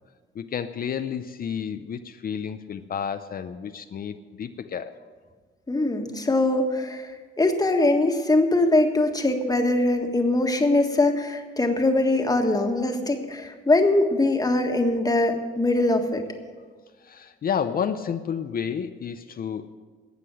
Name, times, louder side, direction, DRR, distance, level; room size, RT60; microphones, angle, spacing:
voice 1, 0.3-5.0 17.0-19.7, left 7 dB, 45° left, 9 dB, 0.6 m, -31 dB
voice 2, 5.7-7.1 7.4-16.2, left 2 dB, 20° left, 4 dB, 1.6 m, -22 dB
13.0 x 8.3 x 7.8 m, 1.5 s
cardioid pair, 90°, 20 cm